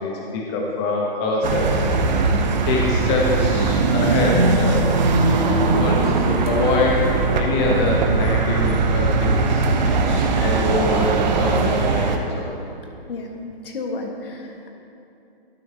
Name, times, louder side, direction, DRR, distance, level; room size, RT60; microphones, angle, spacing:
voice 1, 0.0-5.0 5.8-12.6, left 3 dB, 25° left, -1 dB, 0.9 m, -25 dB
sound 1, 1.4-12.2, right 3 dB, 45° right, 0.9 m, -20 dB
sound 2, 6.3-7.2 9.5-9.7 10.7-11.3, left 3 dB, 15° right, 0.4 m, -36 dB
voice 2, 12.8-13.4 13.6-14.7, left 3 dB, 65° left, 2 dB, 1.5 m, -32 dB
12.0 x 9.1 x 2.8 m, 2.7 s
hypercardioid pair, 145°, 30 cm